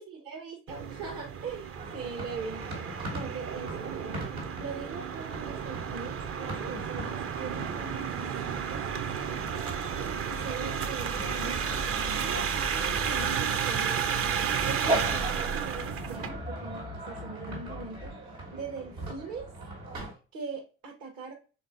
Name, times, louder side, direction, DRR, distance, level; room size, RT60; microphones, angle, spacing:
voice 1, 0.0-4.3 4.6-9.7 10.2-14.2 14.6-19.5 19.9-21.3, right 4 dB, 55° right, 1 dB, 1.0 m, -41 dB
sound 1, 0.7-16.3, right 7 dB, 40° right, 0.6 m, -32 dB
sound 2, 1.7-20.1, right 1 dB, 80° right, 1.5 m, -40 dB
sound 3, 11.7-14.7 15.1-18.1, left 5 dB, 10° left, 0.4 m, -45 dB
5.1 x 3.6 x 2.5 m, 0.35 s
figure-of-eight pair, 45°, 37 cm